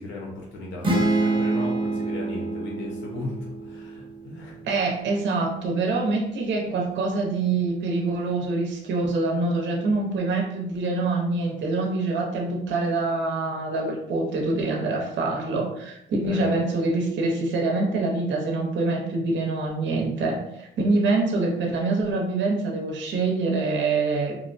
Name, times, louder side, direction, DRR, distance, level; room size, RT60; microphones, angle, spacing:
voice 1, 0.0-4.6 16.2-16.5, left 2 dB, 75° left, -3 dB, 0.9 m, -36 dB
sound 1, 0.8-4.6, right 2 dB, 25° right, 1.0 m, -26 dB
voice 2, 4.6-24.4, right 3 dB, 65° right, -1 dB, 0.8 m, -25 dB
2.8 x 2.1 x 2.6 m, 0.79 s
cardioid pair, 90°, 20 cm